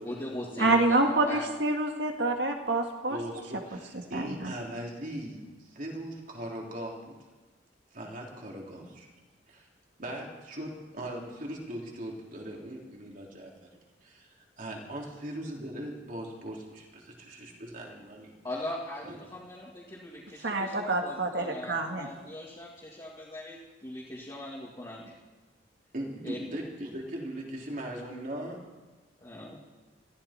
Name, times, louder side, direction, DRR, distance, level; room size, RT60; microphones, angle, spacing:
voice 1, 0.0-1.0 1.3-1.4 18.4-23.6 23.8-25.0 26.2-26.4 29.2-29.6, left 1 dB, 20° left, -6 dB, 2.4 m, -40 dB
voice 2, 0.6-3.2 4.1-4.5 20.4-22.1, right 2 dB, 65° right, 3 dB, 1.9 m, -27 dB
voice 3, 3.1-7.0 7.9-9.1 9.5-9.7 10.0-13.7 14.0-18.3 19.1-19.2 25.9-28.6, right 1 dB, 45° right, -1 dB, 3.4 m, -39 dB
22.5 x 14.5 x 4.4 m, 1.3 s
head